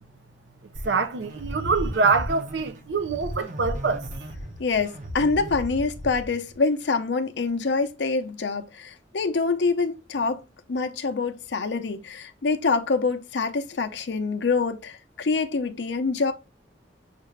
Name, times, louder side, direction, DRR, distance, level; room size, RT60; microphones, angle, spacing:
sound 1, 0.7-6.6, equal, 45° right, 0.9 m, -35 dB
voice 1, 0.8-4.0, right 4 dB, 75° right, 0.5 m, -24 dB
voice 2, 4.6-10.4 10.7-16.3, left 4 dB, 70° left, 0.6 m, -25 dB
6.5 x 2.5 x 3.1 m
head